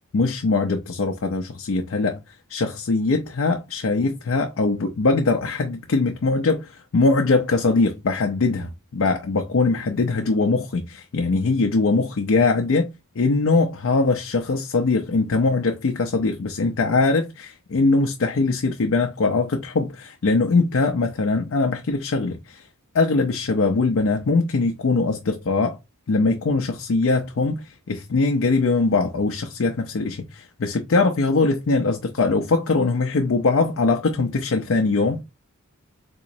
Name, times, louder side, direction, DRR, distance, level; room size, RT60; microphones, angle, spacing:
voice 1, 0.1-2.2 2.5-22.7 22.9-25.8 26.1-35.2, left 3 dB, 65° left, 0.5 m, -21 dB
3.7 x 3.0 x 2.5 m
head